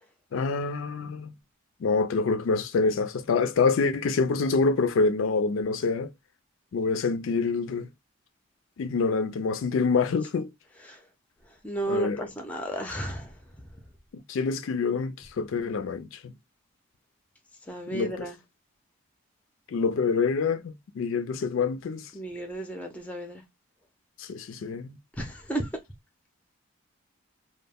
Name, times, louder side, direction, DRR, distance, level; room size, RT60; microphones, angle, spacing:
voice 1, 0.3-1.3 1.8-6.1 6.7-7.9 8.8-10.5 11.9-12.2 14.1-16.3 17.9-18.3 19.7-22.1 24.2-24.9, left 4 dB, 70° left, 0.4 m, -26 dB
voice 2, 11.6-13.3 17.7-18.4 22.1-23.4 25.2-25.7, right 1 dB, 5° left, 0.4 m, -33 dB
2.2 x 2.0 x 3.5 m
head